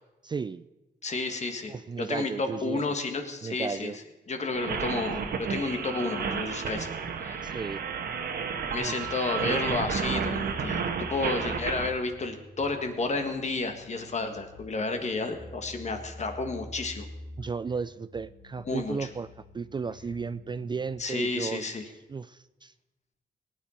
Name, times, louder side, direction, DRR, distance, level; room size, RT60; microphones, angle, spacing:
voice 1, 0.2-0.7 1.7-2.8 3.4-4.0 7.4-7.8 8.8-8.9 17.4-19.3 19.5-21.6 22.1-22.7, right 5 dB, 30° right, 14 dB, 0.4 m, -34 dB
voice 2, 1.0-3.9 4.3-6.9 7.2-7.6 8.7-17.1 18.6-19.1 21.0-21.8, left 3 dB, 45° left, 6 dB, 1.6 m, -31 dB
sound 1, 4.5-11.9, right 6 dB, 75° right, 1.2 m, -32 dB
sound 2, 7.0-20.9, left 1 dB, 75° left, 5.0 m, -47 dB
18.5 x 9.1 x 4.3 m, 1.1 s
cardioid pair, 85°, 16 cm